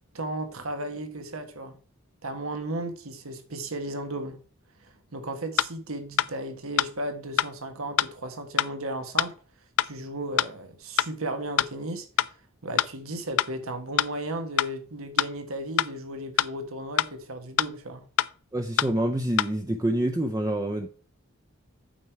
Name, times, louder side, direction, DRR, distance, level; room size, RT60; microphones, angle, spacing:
voice 1, 0.1-1.8 2.2-4.4 4.8-9.3 9.8-12.1 12.6-18.0, right 1 dB, 80° right, 1.4 m, -35 dB
sound 1, 5.6-5.7 6.2-6.3 6.8-6.9 7.4-7.5 8.0-8.1 8.6-8.7 9.2-9.3 9.8-9.9 10.4-10.5 11.0-11.1 11.6-11.7 12.2-12.3 12.8-12.9 13.4-13.5 14.0-14.1 14.6-14.7 15.2-15.3 15.8-15.9 16.4-16.5 17.0-17.1 17.6-17.7 18.2-18.3 18.8-18.9 19.4-19.5, left 10 dB, 70° left, 0.4 m, -23 dB
voice 2, 18.5-20.9, right 1 dB, 15° right, 0.6 m, -27 dB
8.8 x 6.1 x 4.6 m
head